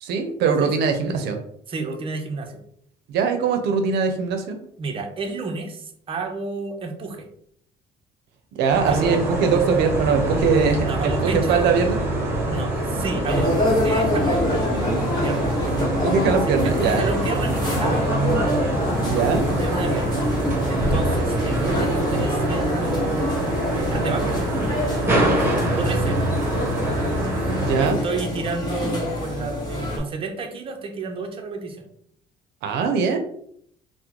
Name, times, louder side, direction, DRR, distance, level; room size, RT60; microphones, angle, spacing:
voice 1, 0.0-1.4 3.1-4.6 8.5-12.0 15.9-17.0 19.1-19.5 27.5-28.0 32.6-33.2, right 5 dB, 80° right, 6 dB, 0.5 m, -21 dB
voice 2, 1.7-2.6 4.8-7.3 8.9-9.2 10.8-11.7 12.5-15.5 16.5-18.1 19.5-20.2 20.7-23.4 23.7-24.4 25.7-26.3 27.7-31.9, right 3 dB, 30° right, 3 dB, 0.6 m, -31 dB
sound 1, 8.7-27.9, right 1 dB, 15° right, 1.3 m, -25 dB
sound 2, 13.3-30.0, left 1 dB, 25° left, 1.2 m, -26 dB
3.6 x 2.1 x 2.9 m, 0.67 s
cardioid pair, 110°, 17 cm